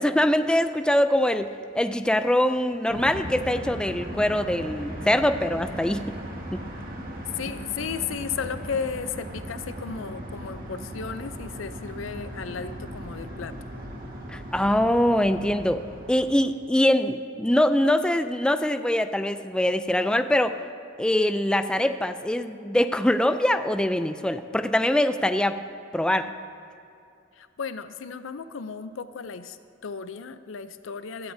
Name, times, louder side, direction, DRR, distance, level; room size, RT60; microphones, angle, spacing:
voice 1, 0.0-1.5 1.7-6.1 6.5-6.6 14.3-15.8 16.1-20.6 21.0-25.6 25.9-26.3, left 1 dB, 5° left, 9 dB, 0.3 m, -23 dB
sound 1, 2.9-16.3, equal, 50° right, 1.6 m, -37 dB
voice 2, 7.3-13.5 27.3-29.6 29.8-31.3, left 6 dB, 85° left, 12 dB, 0.5 m, -34 dB
16.0 x 13.5 x 2.7 m, 2.5 s
head